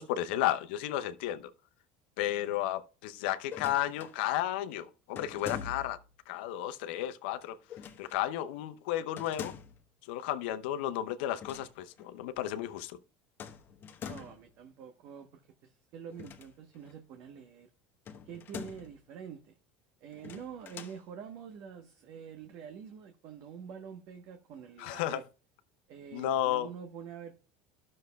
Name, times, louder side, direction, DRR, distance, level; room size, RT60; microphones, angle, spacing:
voice 1, 0.0-1.5 2.2-6.0 6.3-7.6 8.0-9.5 10.1-13.0 24.8-25.2 26.1-26.7, left 12 dB, 75° left, 0.7 m, -33 dB
sound 1, 3.4-4.2 5.2-6.1 7.7-8.2 9.2-9.9 11.3-11.7 12.0-12.1 13.4-14.5 16.1-16.9 18.1-19.0 20.1-21.0, left 7 dB, 40° left, 1.2 m, -44 dB
voice 2, 14.1-17.7 18.2-19.5 20.0-25.2 25.9-27.4, right 7 dB, 60° right, 1.0 m, -46 dB
12.5 x 6.4 x 2.3 m
hypercardioid pair, 80°, 6 cm